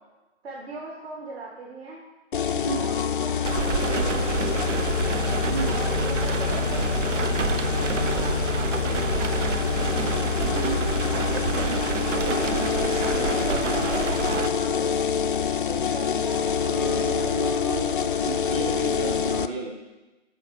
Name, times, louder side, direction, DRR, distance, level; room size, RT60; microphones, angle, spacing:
voice 1, 0.4-2.0 2.7-4.8 5.7-6.8 8.1-9.5 11.1-11.5 12.2-12.3 13.0-15.0 15.7-17.5, right 2 dB, 55° right, -2 dB, 2.2 m, -39 dB
sound 1, 2.3-19.5, left 7 dB, 45° left, 0.5 m, -26 dB
voice 2, 2.5-2.9 5.5-5.8 10.5-10.9 16.6-19.7, right 2 dB, 5° right, 0 dB, 0.5 m, -32 dB
sound 2, 3.4-14.5, right 6 dB, 75° right, 0.8 m, -28 dB
12.5 x 4.6 x 7.2 m, 1.1 s
figure-of-eight pair, 140°, 36 cm